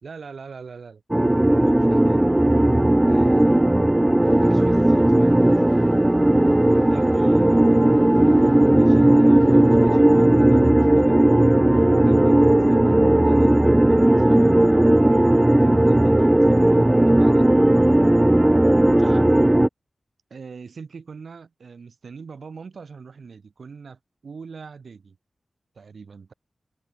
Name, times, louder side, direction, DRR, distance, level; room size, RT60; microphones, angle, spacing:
voice 1, 0.0-1.0 1.6-2.2 3.0-3.8 4.4-5.4 6.9-11.3 11.7-14.8 15.4-17.5 19.0-19.3 20.3-25.2 25.7-26.3, right 5 dB, 80° right, 4.7 m, -42 dB
sound 1, 1.1-19.7, right 1 dB, 20° right, 0.8 m, -16 dB
sound 2, 4.2-10.7, equal, 5° left, 3.6 m, -38 dB
open air
cardioid pair, 40°, 0 cm